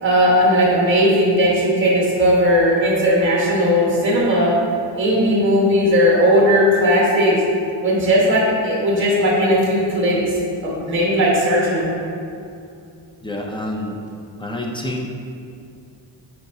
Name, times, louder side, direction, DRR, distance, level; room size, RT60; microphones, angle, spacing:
voice 1, 0.0-4.5 4.9-7.4 7.8-10.2 10.6-11.9, equal, 25° right, -5 dB, 1.4 m, -17 dB
voice 2, 13.2-14.0 14.4-15.1, left 1 dB, 10° left, -1 dB, 0.6 m, -27 dB
8.7 x 4.7 x 2.8 m, 2.5 s
wide cardioid pair, 160°, 44 cm